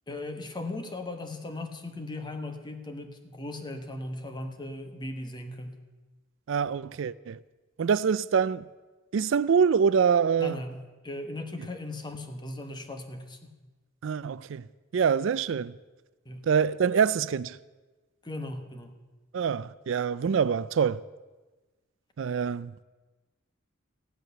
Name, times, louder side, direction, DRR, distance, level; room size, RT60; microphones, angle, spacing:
voice 1, 0.1-5.8 10.4-13.5 16.2-16.5 18.2-18.9, left 2 dB, 20° left, 1.3 m, -38 dB
voice 2, 6.5-7.4 7.8-8.6 9.1-10.6 14.0-14.6 14.9-15.7 16.4-17.6 19.3-21.0 22.2-22.7, right 6 dB, 70° right, 0.4 m, -25 dB
15.0 x 11.0 x 6.8 m
head